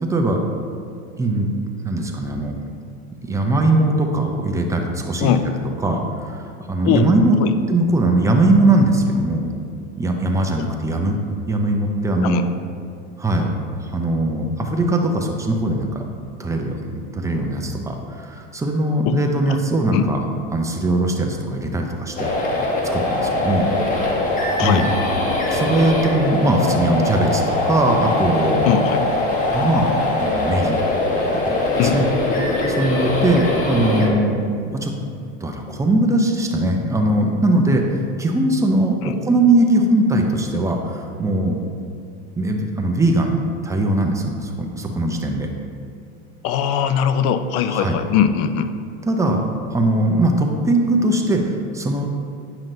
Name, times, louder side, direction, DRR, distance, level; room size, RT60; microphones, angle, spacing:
voice 1, 0.0-0.4 1.2-1.5 1.8-2.5 3.3-5.4 5.8-7.4 7.7-9.5 10.0-11.2 11.5-12.4 13.2-13.5 13.8-16.0 16.4-20.2 20.5-22.3 22.9-24.1 24.5-24.9 25.5-28.7 29.5-30.8 31.5-32.1 32.7-34.4 34.8-34.9 35.4-37.8 38.2-41.6 42.4-43.4 43.6-45.5 47.7-48.0 49.0-49.4 49.7-52.1, right 1 dB, 10° right, 1 dB, 0.6 m, -20 dB
sound 1, 22.2-34.1, left 2 dB, 25° left, 1.0 m, -21 dB
voice 2, 28.7-29.0 31.8-32.0 39.0-39.1 46.4-48.7, left 9 dB, 50° left, 10 dB, 0.4 m, -20 dB
8.8 x 5.8 x 2.6 m, 2.4 s
supercardioid pair, 125°, 30 cm